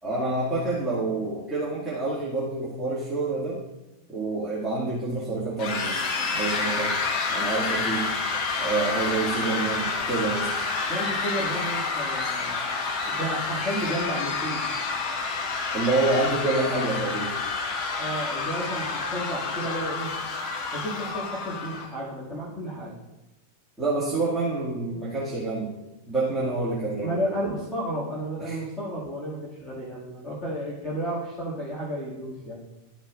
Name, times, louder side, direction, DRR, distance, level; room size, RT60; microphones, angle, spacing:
voice 1, 0.0-3.6 4.1-6.0 6.3-7.0 7.3-8.1 8.6-10.6 12.2-12.4 15.7-17.3 23.8-25.7 26.1-27.2 28.4-28.6, right 3 dB, 10° right, -9 dB, 2.0 m, -27 dB
sound 1, 5.6-21.9, left 4 dB, 40° left, 1.1 m, -29 dB
voice 2, 10.9-12.6 13.0-14.6 18.0-20.1 20.7-22.9 27.0-32.6, right 1 dB, 10° left, -8 dB, 2.0 m, -32 dB
12.5 x 5.3 x 2.5 m, 0.99 s
figure-of-eight pair, 90°, 0 cm